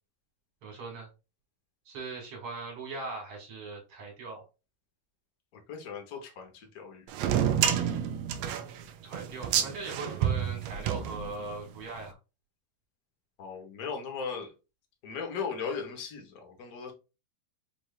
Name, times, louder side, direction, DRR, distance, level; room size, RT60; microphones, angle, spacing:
voice 1, 0.6-1.1 1.9-4.4 9.0-12.2, right 3 dB, 55° right, 2.9 m, -40 dB
voice 2, 5.5-7.1 13.4-14.5 15.0-16.9, left 6 dB, 70° left, 0.8 m, -37 dB
sound 1, 7.1-11.7, right 9 dB, 80° right, 1.6 m, -29 dB
6.1 x 3.3 x 2.4 m
omnidirectional pair, 3.3 m